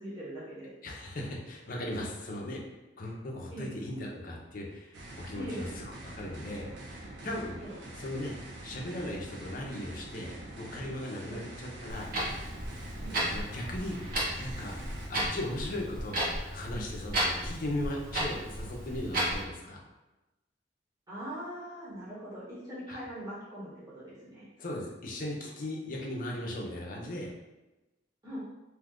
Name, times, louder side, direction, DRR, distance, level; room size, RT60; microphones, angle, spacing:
voice 1, 0.0-0.7 3.5-3.7 5.4-5.7 7.6-7.8 11.2-11.4 13.0-13.2 21.1-24.5 28.2-28.4, equal, 20° right, -9 dB, 0.9 m, -41 dB
voice 2, 0.8-2.6 3.0-6.7 7.2-7.6 8.0-8.4 8.6-12.1 13.3-14.0 14.4-19.8 22.9-23.0 24.6-27.3, left 1 dB, 50° left, -1 dB, 0.6 m, -38 dB
sound 1, 4.9-15.1, right 1 dB, 80° right, 0.6 m, -45 dB
Clock, 11.9-19.4, right 1 dB, 50° right, 0.9 m, -34 dB
2.6 x 2.4 x 3.6 m, 1.0 s
head